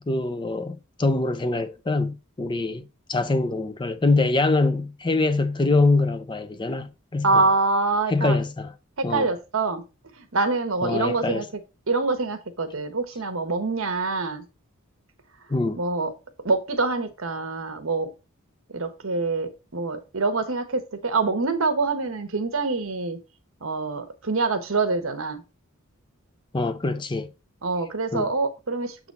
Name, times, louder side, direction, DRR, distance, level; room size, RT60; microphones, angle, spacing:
voice 1, 0.0-2.8 3.1-7.4 8.1-8.7 9.0-9.3 10.8-11.4 15.5-15.8 26.5-27.3 28.1-28.3, left 3 dB, 20° left, 0.5 m, -24 dB
voice 2, 7.2-8.4 9.0-9.8 10.2-11.5 11.9-14.4 15.7-16.1 16.4-18.1 18.7-23.2 23.6-25.4 27.6-29.1, right 3 dB, 65° right, 1.1 m, -25 dB
7.2 x 4.0 x 4.1 m
head